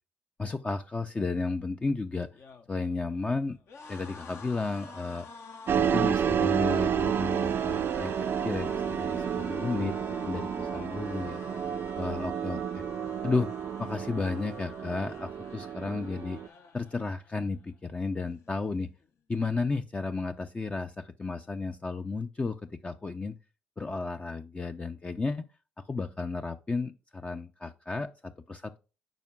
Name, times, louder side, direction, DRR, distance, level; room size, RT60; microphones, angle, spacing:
voice 1, 0.4-2.3 2.7-3.6 3.9-5.3 5.7-11.4 12.0-12.8 13.2-13.5 13.8-16.4 16.7-18.9 19.3-23.3 23.8-25.4 25.9-28.1 28.5-28.8, left 3 dB, 25° left, 0.5 m, -33 dB
sound 1, 2.2-17.4 17.8-18.0 18.3-19.1, left 4 dB, 55° left, 0.9 m, -48 dB
sound 2, 5.7-16.5, right 8 dB, 50° right, 0.4 m, -30 dB
9.1 x 5.0 x 2.4 m
hypercardioid pair, 50°, 5 cm